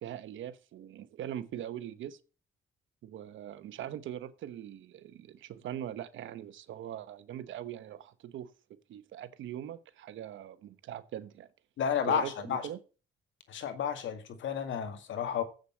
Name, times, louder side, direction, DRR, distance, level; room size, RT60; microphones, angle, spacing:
voice 1, 0.0-2.2 3.0-8.5 8.9-11.5 12.1-12.8, right 11 dB, 75° right, 1.1 m, -41 dB
voice 2, 11.8-12.7 13.5-15.4, left 8 dB, 70° left, 2.0 m, -32 dB
8.0 x 6.5 x 7.3 m
cardioid pair, 90°, 20 cm